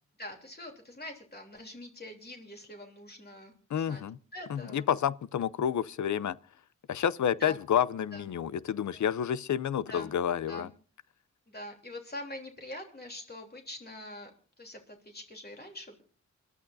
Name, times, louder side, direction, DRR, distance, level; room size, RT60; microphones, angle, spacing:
voice 1, 0.2-4.0 4.3-4.8 7.4-7.6 8.1-8.2 8.9-9.0 9.9-10.1 10.5-10.7 11.5-14.3 14.6-16.0, left 1 dB, 35° left, 3.2 m, -44 dB
voice 2, 3.7-4.2 4.5-6.4 6.9-10.7, left 9 dB, 75° left, 0.6 m, -29 dB
27.5 x 12.5 x 2.7 m
cardioid pair, 80°, 30 cm